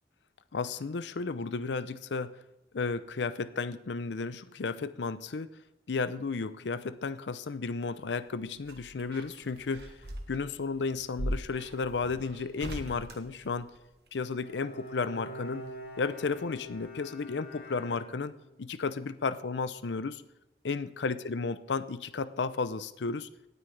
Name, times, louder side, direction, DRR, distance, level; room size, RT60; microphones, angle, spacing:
voice 1, 0.5-2.3 2.7-5.5 5.9-10.0 10.3-13.7 14.1-15.7 16.0-18.3 18.6-20.2 20.6-23.3, left 4 dB, 85° left, 14 dB, 0.6 m, -33 dB
sound 1, 8.1-14.1 15.6-16.4 16.7-16.8, equal, 65° right, 1.4 m, -41 dB
Bowed string instrument, 14.3-18.6, left 1 dB, 55° left, 2.4 m, -45 dB
17.5 x 9.3 x 3.3 m, 0.97 s
head